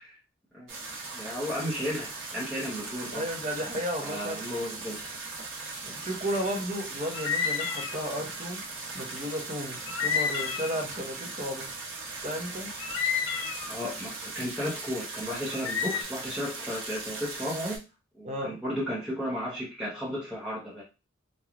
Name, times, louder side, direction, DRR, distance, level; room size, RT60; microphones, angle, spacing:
sound 1, 0.7-17.8, right 3 dB, 85° right, 0.9 m, -39 dB
voice 1, 1.1-3.3 4.0-5.0 13.7-17.8 18.2-20.8, equal, 5° right, -8 dB, 0.7 m, -34 dB
voice 2, 3.1-4.4 5.9-8.6 8.9-11.7 12.2-12.7 18.2-18.6, equal, 35° right, 3 dB, 0.7 m, -34 dB
sound 2, 7.1-8.1 9.9-10.9 12.8-13.8 15.5-16.0, left 6 dB, 65° left, 0.4 m, -30 dB
3.0 x 2.2 x 2.4 m, 0.28 s
head